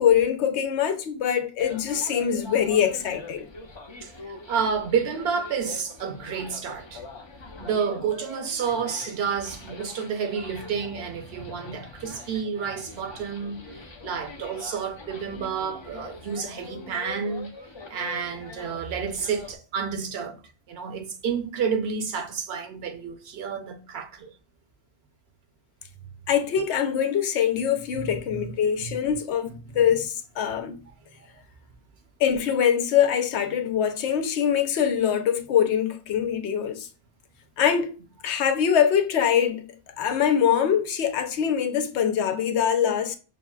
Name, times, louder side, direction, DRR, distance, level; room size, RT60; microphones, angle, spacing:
voice 1, 0.0-3.5 26.3-30.8 32.2-36.9 37.6-37.9 38.2-39.6 40.0-43.2, left 8 dB, 90° left, 0.9 m, -23 dB
sound 1, 1.6-19.6, left 3 dB, 35° left, 0.4 m, -43 dB
voice 2, 4.5-7.0 7.6-13.6 14.0-17.5 17.9-20.4 20.7-24.3 27.9-28.5 28.8-29.0 31.3-31.4, right 6 dB, 70° right, 0.9 m, -30 dB
6.0 x 2.1 x 2.3 m
omnidirectional pair, 1.1 m